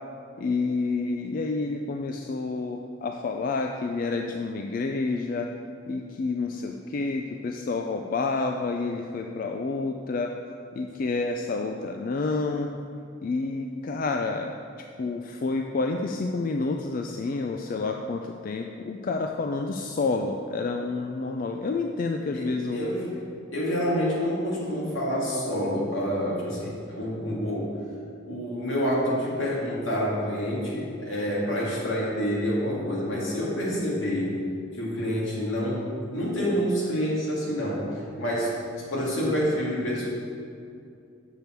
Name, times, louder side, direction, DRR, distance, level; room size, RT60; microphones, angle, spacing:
voice 1, 0.4-5.5 5.9-10.3 10.7-12.7 13.2-14.6 15.0-22.9, left 3 dB, 45° left, 3 dB, 0.3 m, -29 dB
voice 2, 22.3-23.1 23.5-27.8 28.2-34.4 34.7-37.9 38.2-40.1, equal, 75° left, -5 dB, 2.1 m, -28 dB
7.0 x 6.6 x 4.5 m, 2.4 s
head